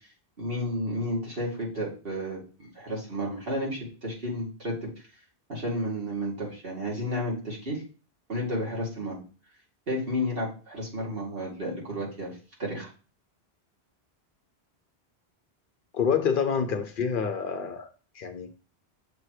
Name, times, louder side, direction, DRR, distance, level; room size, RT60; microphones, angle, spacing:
voice 1, 0.4-4.9 5.5-7.8 8.3-9.2 9.9-12.3 12.6-12.9, equal, 65° right, 2.5 m, -32 dB
voice 2, 15.9-17.9 18.1-18.5, left 6 dB, 60° left, 0.8 m, -27 dB
6.7 x 3.0 x 4.7 m
omnidirectional pair, 1.1 m